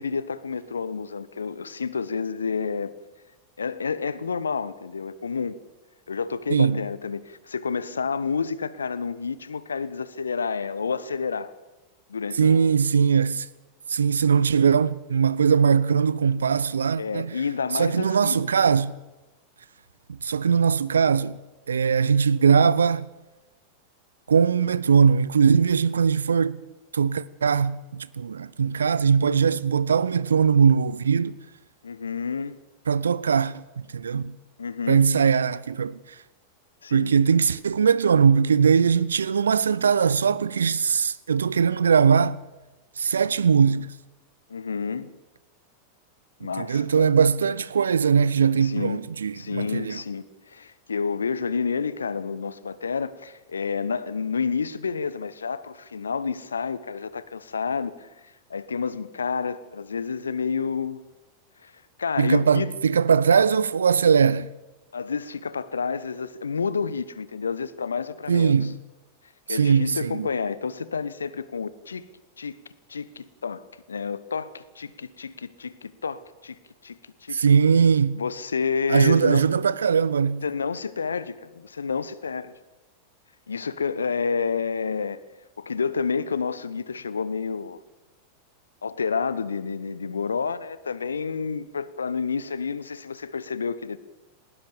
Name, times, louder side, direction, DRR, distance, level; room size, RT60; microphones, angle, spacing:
voice 1, 0.0-2.9 3.6-5.6 6.1-11.5 12.1-12.7 17.0-18.5 31.8-32.6 34.6-35.1 36.8-37.1 44.5-45.2 46.4-47.1 48.6-49.0 49.4-61.0 61.6-61.7 62.0-62.7 64.9-68.7 69.5-72.1 72.4-72.6 72.9-77.4 78.1-79.5 80.4-82.5 83.5-85.2 85.6-87.8 88.8-94.0, left 5 dB, 75° left, 1.0 m, -29 dB
voice 2, 6.5-6.8 12.4-13.5 13.9-17.3 17.7-18.9 20.2-21.4 21.7-23.1 24.3-26.6 26.9-31.4 32.9-34.3 34.9-36.0 36.9-42.4 43.0-43.9 46.4-50.0 62.2-64.5 68.3-68.7 69.5-70.3 77.3-78.2 78.9-80.4, right 6 dB, 70° right, 0.7 m, -20 dB
20.0 x 18.5 x 7.0 m
figure-of-eight pair, 90°, 0 cm